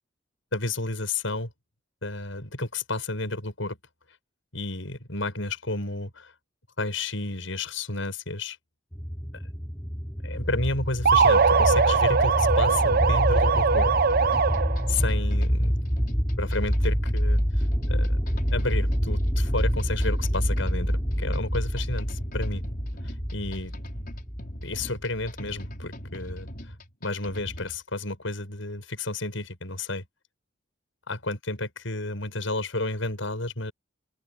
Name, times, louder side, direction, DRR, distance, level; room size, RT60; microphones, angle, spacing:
voice 1, 0.5-1.5 2.0-3.8 4.5-6.3 6.8-8.6 9.3-9.4 10.2-13.9 14.9-15.8 16.4-18.2 18.5-22.6 23.0-23.7 24.6-26.5 27.0-30.0 31.1-33.7, left 2 dB, 80° left, 7.5 m, -31 dB
sound 1, 8.9-25.9, equal, 10° left, 5.3 m, -27 dB
sound 2, 11.1-14.9, right 5 dB, 50° right, 0.8 m, -21 dB
sound 3, 13.9-27.8, equal, 50° left, 5.5 m, -41 dB
open air
head